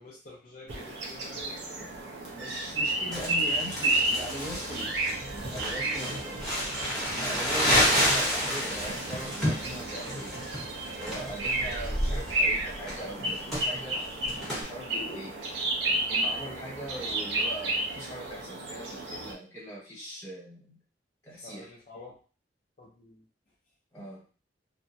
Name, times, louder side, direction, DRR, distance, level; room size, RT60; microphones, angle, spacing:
voice 1, 0.0-1.9 6.0-6.2 21.3-22.2 22.8-23.2, left 2 dB, 45° left, -6 dB, 0.6 m, -48 dB
sound 1, 0.7-19.3, right 2 dB, 85° right, 0.7 m, -32 dB
voice 2, 2.3-5.0 5.5-6.4 7.1-10.4 11.0-14.0 14.5-15.4 16.1-20.8 21.2-21.7 23.9-24.2, equal, 20° left, -6 dB, 1.3 m, -41 dB
Crumpling crinkling, 3.1-14.6, equal, ahead, 1.0 m, -30 dB
sound 2, 4.3-12.3, right 3 dB, 60° right, 0.4 m, -44 dB
2.6 x 2.2 x 2.6 m, 0.36 s
head